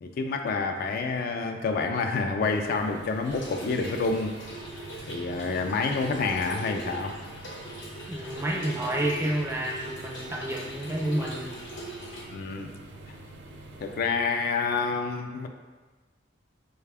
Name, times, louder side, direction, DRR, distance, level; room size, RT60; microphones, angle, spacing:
voice 1, 0.0-4.3 5.1-7.2 12.3-12.7 13.8-15.5, left 4 dB, 50° left, 4 dB, 0.3 m, -28 dB
sound 1, 2.4-14.1, right 2 dB, 75° right, 0.5 m, -46 dB
Trickle dribble / Fill (with liquid), 3.2-12.2, right 1 dB, 85° left, 0.8 m, -41 dB
voice 2, 8.1-11.6, right 1 dB, 15° right, -1 dB, 0.4 m, -29 dB
4.6 x 2.3 x 3.4 m, 1.3 s
head